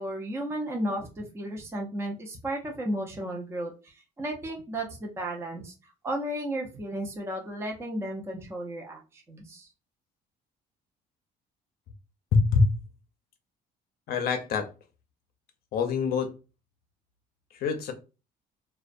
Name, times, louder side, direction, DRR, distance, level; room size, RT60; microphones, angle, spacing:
voice 1, 0.0-5.7 6.0-9.7, right 1 dB, 15° right, 1 dB, 0.5 m, -34 dB
voice 2, 12.3-12.7 14.1-14.7 15.7-16.3 17.5-17.9, left 4 dB, 65° left, 6 dB, 0.5 m, -24 dB
2.4 x 2.2 x 2.5 m, 0.30 s
cardioid pair, 110°, 17 cm